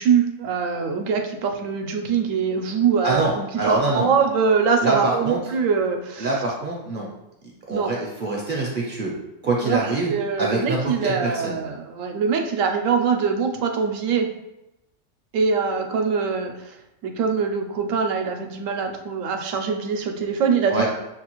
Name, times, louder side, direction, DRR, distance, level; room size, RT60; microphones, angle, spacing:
voice 1, 0.0-6.3 7.7-7.9 9.6-14.3 15.3-16.8 17.0-20.9, right 6 dB, 80° right, 4 dB, 1.0 m, -23 dB
voice 2, 3.6-4.1 4.8-5.4 6.2-7.1 7.7-9.1 9.4-10.1 10.4-11.6 20.7-20.9, right 2 dB, 50° right, -2 dB, 0.7 m, -24 dB
6.4 x 2.4 x 2.9 m, 0.92 s
omnidirectional pair, 1.4 m